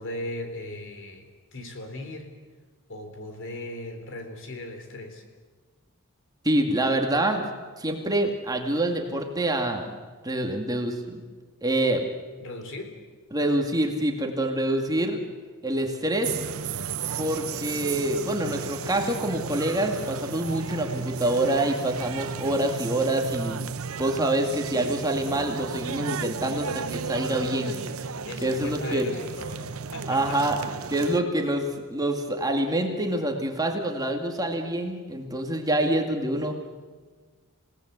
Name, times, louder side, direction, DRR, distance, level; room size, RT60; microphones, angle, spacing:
voice 1, 0.0-2.4 2.9-5.2 12.4-12.9 28.3-30.4 30.7-30.8, left 1 dB, 60° left, 5 dB, 3.7 m, -38 dB
voice 2, 6.4-7.4 7.8-9.9 10.2-11.2 11.6-12.1 13.3-15.2 15.6-16.3 17.2-23.7 24.0-27.7 28.4-29.1 30.1-30.6 30.9-36.6, right 1 dB, 15° right, 3 dB, 2.2 m, -26 dB
sound 1, 16.2-31.2, right 6 dB, 70° right, 0.8 m, -34 dB
27.0 x 18.0 x 8.2 m, 1.4 s
head